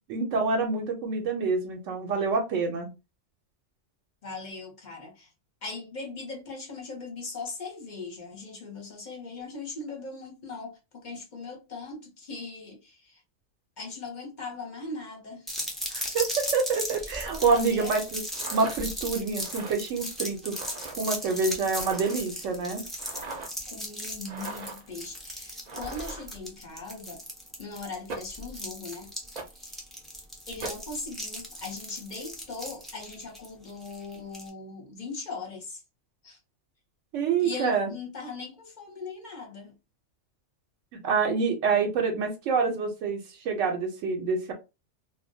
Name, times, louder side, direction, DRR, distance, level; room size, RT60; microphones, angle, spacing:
voice 1, 0.1-2.9 15.9-18.2 18.5-20.5 20.9-22.8 37.1-37.9 40.9-44.5, right 4 dB, 85° right, 1.0 m, -27 dB
voice 2, 4.2-5.3 5.6-13.2 13.8-15.7 17.5-17.9 21.3-21.7 22.6-22.9 23.7-27.2 27.6-29.1 29.6-29.8 30.5-35.8 36.2-36.4 37.4-39.7, left 3 dB, 45° left, 0.8 m, -39 dB
sound 1, 15.5-34.5, equal, ahead, 0.4 m, -37 dB
sound 2, 17.2-17.6 18.3-18.8 19.4-19.8 20.5-21.0 21.7-22.3 23.0-23.5 24.3-24.9 25.7-26.4 28.1-28.4 29.4-29.6 30.6-30.9, right 3 dB, 50° right, 0.5 m, -40 dB
2.3 x 2.1 x 2.6 m
omnidirectional pair, 1.3 m